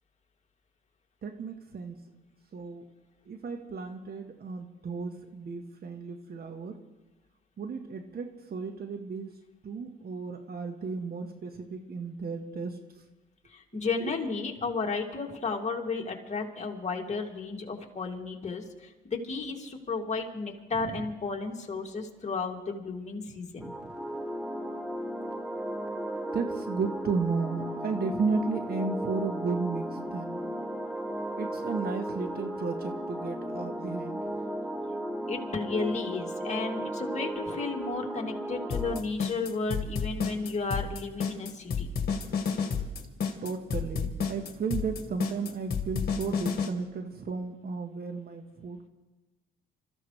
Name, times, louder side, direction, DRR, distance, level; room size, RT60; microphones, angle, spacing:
voice 1, 1.2-2.0 2.5-2.9 3.3-6.8 7.6-9.4 9.6-13.0 14.0-14.1 20.7-21.0 23.6-23.9 26.3-30.4 31.4-34.3 43.4-48.9, right 4 dB, 50° right, 6 dB, 1.5 m, -34 dB
voice 2, 13.5-23.7 35.3-41.9, left 4 dB, 35° left, 1 dB, 2.5 m, -33 dB
sound 1, 23.6-39.0, right 1 dB, 5° right, 1.1 m, -35 dB
sound 2, 38.7-46.7, left 6 dB, 50° left, 2.1 m, -30 dB
27.5 x 14.5 x 3.3 m, 1.1 s
cardioid pair, 90°, 20 cm